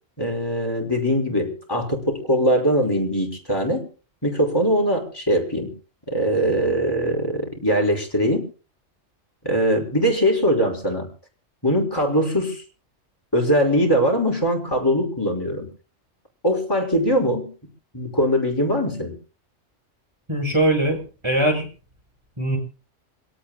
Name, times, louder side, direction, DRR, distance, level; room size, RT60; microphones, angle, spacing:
voice 1, 0.2-3.8 4.2-5.7 6.1-8.4 9.4-11.1 11.6-12.6 13.3-15.7 16.4-17.5 17.9-19.1, equal, 15° left, 1 dB, 5.5 m, -21 dB
voice 2, 20.3-21.7 22.4-22.6, right 1 dB, 20° right, 2 dB, 6.7 m, -21 dB
27.0 x 18.0 x 2.2 m, 0.36 s
omnidirectional pair, 1.4 m